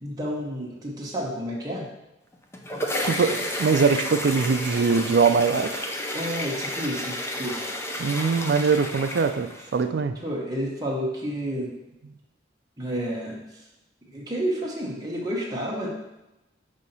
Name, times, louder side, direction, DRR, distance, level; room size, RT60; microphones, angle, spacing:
voice 1, 0.0-1.9 6.1-7.7 10.2-11.7 12.8-13.4 14.1-15.9, equal, 20° right, -4 dB, 1.1 m, -30 dB
sound 1, 2.3-9.8, left 1 dB, 15° left, 0.5 m, -31 dB
voice 2, 3.0-5.9 8.0-10.2, right 5 dB, 60° right, 8 dB, 0.4 m, -22 dB
6.2 x 2.8 x 5.5 m, 0.95 s
head